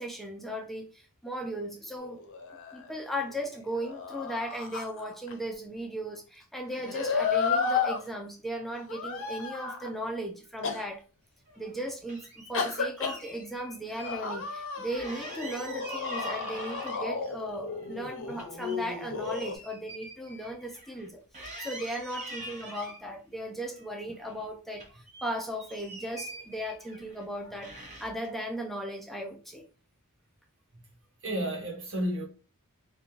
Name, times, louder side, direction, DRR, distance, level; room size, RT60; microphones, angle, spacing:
voice 1, 0.0-2.2 2.7-11.0 11.6-21.2 21.6-29.6, equal, ahead, 0.4 m, -37 dB
sound 1, 2.0-3.3 3.7-5.3 6.7-8.0 8.9-9.9 10.6-10.8 12.5-13.2 13.9-19.5, left 5 dB, 60° left, 0.7 m, -33 dB
sound 2, 11.5-12.5 13.0-14.2 14.5-14.6 14.9-17.3 17.7-21.1 21.3-23.0 23.6-24.5 24.7-27.2 27.6-28.3, right 1 dB, 35° right, 0.9 m, -45 dB
voice 2, 26.1-26.4 27.4-27.6 31.2-32.3, right 1 dB, 60° right, 1.1 m, -34 dB
3.7 x 2.2 x 3.0 m
head